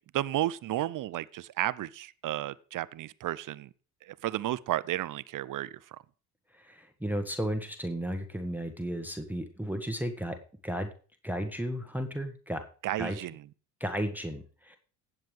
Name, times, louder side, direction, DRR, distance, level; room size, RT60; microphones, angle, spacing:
voice 1, 0.1-3.7 4.0-6.0 12.8-13.5, right 14 dB, 45° right, 0.7 m, -33 dB
voice 2, 6.5-10.4 10.6-10.9 11.2-12.6 13.0-13.2 13.8-14.8, equal, 5° right, 1.4 m, -34 dB
18.0 x 7.5 x 3.3 m
hypercardioid pair, 55°, 46 cm